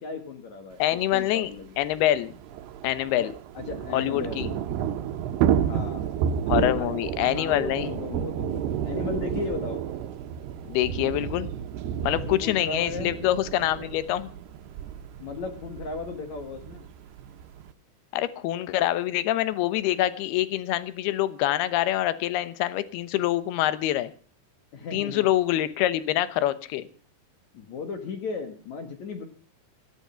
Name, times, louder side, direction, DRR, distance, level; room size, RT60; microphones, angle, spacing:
voice 1, 0.0-1.8 3.2-4.7 5.6-6.2 6.5-6.9 7.3-9.8 12.1-13.1 15.2-16.8 24.7-25.3 27.5-29.2, left 5 dB, 55° left, 6 dB, 2.2 m, -35 dB
voice 2, 0.8-1.5 1.8-2.3 2.8-3.3 3.9-4.5 6.5-7.9 10.7-11.5 12.0-14.3 18.1-24.1 24.9-26.8, left 14 dB, 75° left, 14 dB, 2.8 m, -25 dB
Thunder / Rain, 1.1-1.2 1.4-1.5 1.8-17.7, right 9 dB, 75° right, 2.9 m, -31 dB
17.0 x 14.0 x 5.7 m, 0.42 s
omnidirectional pair, 5.0 m